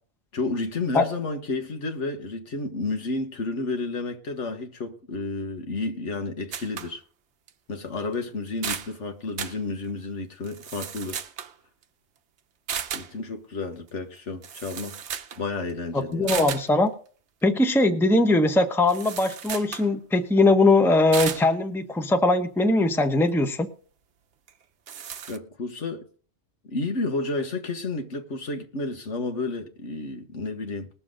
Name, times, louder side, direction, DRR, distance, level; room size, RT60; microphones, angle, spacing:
voice 1, 0.3-7.0 7.7-11.2 12.9-15.0 15.4-16.4 25.3-26.1 26.7-30.9, left 3 dB, 85° left, 1.7 m, -31 dB
sound 1, 6.5-6.9 7.5-7.6 8.1-8.2 8.5-8.9 9.4-9.6 10.4-11.5 12.7-13.1 14.2-14.3 14.4-15.4 15.7-15.8 16.3-16.7 18.9-19.9 21.1-21.5 24.5-24.6 24.9-25.4, right 8 dB, 70° right, 1.0 m, -34 dB
voice 2, 15.9-16.9 17.4-23.7, left 2 dB, ahead, 0.7 m, -21 dB
20.0 x 7.1 x 3.8 m
omnidirectional pair, 1.2 m